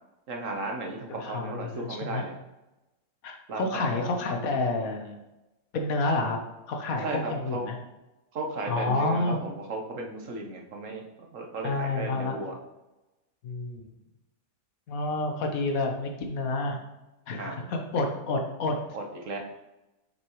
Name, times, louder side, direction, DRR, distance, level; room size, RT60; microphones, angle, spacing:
voice 1, 0.3-2.3 3.5-4.1 7.0-7.7 8.3-12.5 17.4-17.7 18.9-19.4, right 2 dB, 65° right, 2 dB, 1.4 m, -35 dB
voice 2, 1.2-2.2 3.2-5.2 5.7-6.4 6.7-7.8 8.7-9.4 11.6-12.4 13.4-13.9 14.9-16.8 17.3-18.8, left 2 dB, 75° left, 3 dB, 1.4 m, -29 dB
7.5 x 6.2 x 3.1 m, 1.0 s
omnidirectional pair, 1.5 m